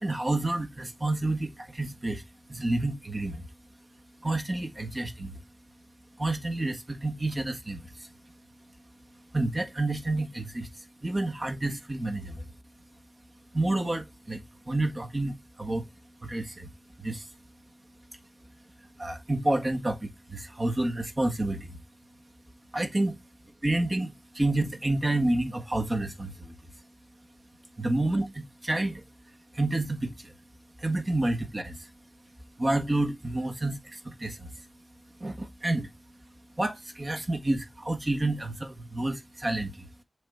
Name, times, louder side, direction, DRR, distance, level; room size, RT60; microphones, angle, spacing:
voice 1, 0.0-3.5 4.2-5.4 6.2-8.1 9.3-12.5 13.5-15.9 16.2-16.7 17.0-17.3 19.0-21.8 22.7-23.1 23.6-26.6 27.8-29.0 29.5-30.3 30.8-31.9 32.6-34.7 35.2-35.9 36.6-39.9, right 2 dB, 45° right, 1.5 m, -29 dB
7.2 x 3.6 x 4.2 m
wide cardioid pair, 60°, 0 cm